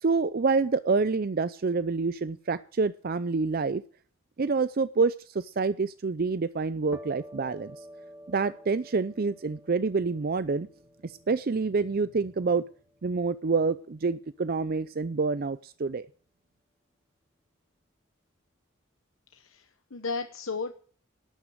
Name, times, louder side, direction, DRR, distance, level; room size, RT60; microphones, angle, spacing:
voice 1, 0.0-3.8 4.4-7.7 8.3-10.7 11.0-12.6 13.0-16.1, right 4 dB, 45° right, 15 dB, 0.5 m, -27 dB
sound 1, 6.9-14.4, equal, 10° right, 1.4 m, -51 dB
voice 2, 19.3-20.7, left 4 dB, 70° left, 8 dB, 1.0 m, -34 dB
12.0 x 9.3 x 6.4 m, 0.44 s
head